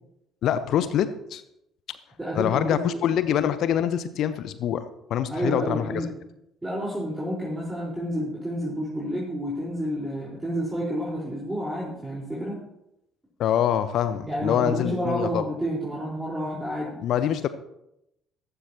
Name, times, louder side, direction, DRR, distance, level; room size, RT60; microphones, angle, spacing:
voice 1, 0.4-1.4 2.3-5.8 13.4-15.4 17.0-17.5, left 10 dB, 55° left, 12 dB, 1.0 m, -25 dB
voice 2, 2.2-3.0 5.3-6.1 6.6-12.6 14.2-17.0, equal, 15° right, -6 dB, 4.7 m, -30 dB
14.5 x 14.0 x 3.0 m, 0.83 s
figure-of-eight pair, 50°, 0 cm